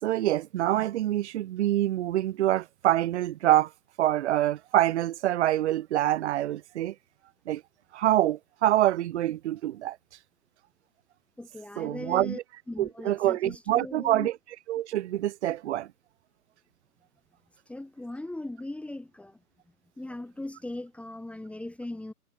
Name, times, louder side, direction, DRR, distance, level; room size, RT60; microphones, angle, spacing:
voice 1, 0.0-3.7 4.0-6.9 7.5-7.6 7.9-10.0 11.8-12.4 12.8-14.4 14.7-15.9, right 13 dB, 45° right, 2.7 m, -26 dB
voice 2, 11.4-12.4 12.7-14.3 17.7-19.4 20.0-22.1, left 1 dB, 5° left, 2.8 m, -39 dB
figure-of-eight pair, 125°, 46 cm